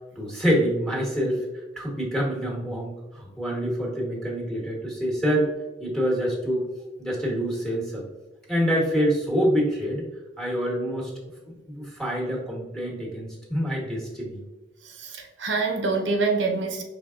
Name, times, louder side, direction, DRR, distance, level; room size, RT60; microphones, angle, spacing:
voice 1, 0.2-5.5 5.8-6.7 7.0-8.0 8.5-10.0 10.4-11.1 11.7-14.4, equal, 5° left, -3 dB, 1.1 m, -26 dB
voice 2, 14.8-16.8, right 3 dB, 80° right, 3 dB, 0.7 m, -26 dB
5.2 x 3.4 x 2.4 m, 1.2 s
head